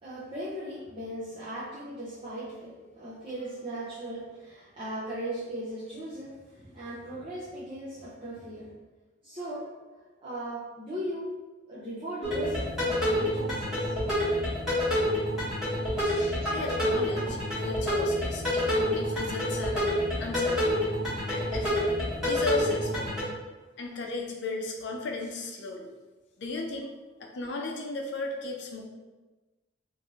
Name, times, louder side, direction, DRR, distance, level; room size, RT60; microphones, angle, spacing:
voice 1, 0.0-8.7 9.2-11.3 11.7-13.9 16.3-16.6, right 1 dB, 30° right, -10 dB, 0.6 m, -38 dB
sound 1, 12.2-23.2, equal, ahead, 1.4 m, -28 dB
voice 2, 16.0-20.9 21.3-21.9 22.2-23.1 23.8-25.9 26.4-26.9 27.2-28.8, left 3 dB, 60° left, 1 dB, 0.6 m, -35 dB
3.1 x 2.6 x 3.6 m, 1.2 s
head